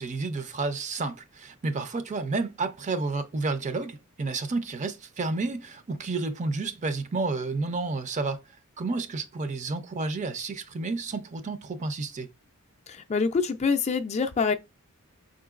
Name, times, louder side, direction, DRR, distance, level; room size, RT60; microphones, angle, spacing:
voice 1, 0.0-8.4 8.8-12.3, right 3 dB, 35° right, 0.5 m, -31 dB
voice 2, 12.9-14.5, left 5 dB, 30° left, 0.4 m, -25 dB
5.5 x 3.8 x 2.4 m
head